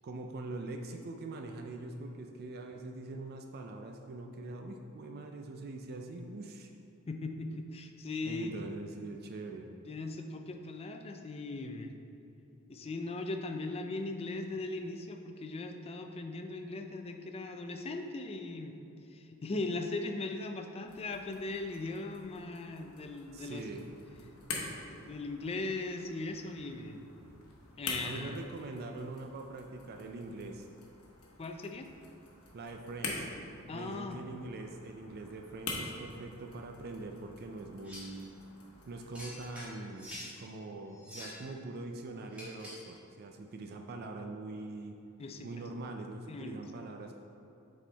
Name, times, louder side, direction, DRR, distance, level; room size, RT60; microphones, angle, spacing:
voice 1, 0.0-6.7 8.2-9.7 23.3-23.9 24.2-24.3 28.0-30.7 32.5-33.3 33.7-38.3 38.9-44.9 45.4-47.2, right 2 dB, 45° right, 3 dB, 0.4 m, -43 dB
voice 2, 7.1-8.7 9.9-11.9 12.7-18.8 19.1-23.7 24.5-27.0 27.8-28.4 31.4-31.9 33.7-34.2 45.2-45.5 46.3-46.6, left 2 dB, 25° left, 5 dB, 0.4 m, -39 dB
sound 1, 20.9-39.8, left 3 dB, 70° left, 1.0 m, -46 dB
sound 2, 37.8-38.2 39.1-40.3 40.9-41.5 42.3-42.9, left 1 dB, 5° right, 1.5 m, -46 dB
7.2 x 4.3 x 3.4 m, 2.7 s
head